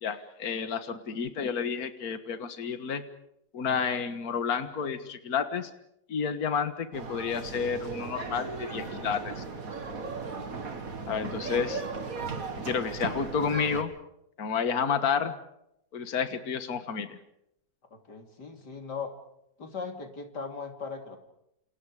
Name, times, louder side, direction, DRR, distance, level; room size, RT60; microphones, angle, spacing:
voice 1, 0.0-3.1 3.5-5.7 6.1-9.4 11.1-11.8 12.6-13.9 14.4-15.3 15.9-17.2, left 6 dB, 65° left, 10 dB, 2.0 m, -30 dB
sound 1, 6.9-13.8, right 4 dB, 55° right, 2.5 m, -36 dB
voice 2, 11.1-11.6 17.9-19.1 19.6-21.2, left 5 dB, 85° left, 5 dB, 3.6 m, -39 dB
29.0 x 28.5 x 5.0 m, 0.80 s
omnidirectional pair, 1.8 m